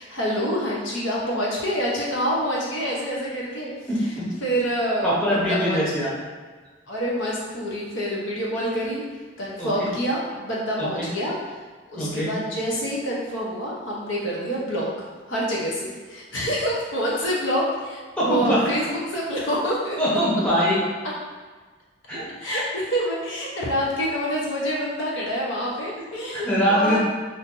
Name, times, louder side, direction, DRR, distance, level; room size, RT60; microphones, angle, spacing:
voice 1, 0.0-3.7 4.4-6.1 6.9-9.0 9.4-11.4 11.9-14.9 15.3-20.0 22.4-27.0, equal, 75° left, -5 dB, 0.9 m, -27 dB
voice 2, 3.9-4.3 5.0-6.1 9.6-9.9 10.8-11.1 11.9-12.3 18.2-18.7 20.0-20.8 22.1-22.3 26.3-27.0, equal, 5° left, -7 dB, 0.8 m, -23 dB
2.7 x 2.6 x 3.7 m, 1.4 s
head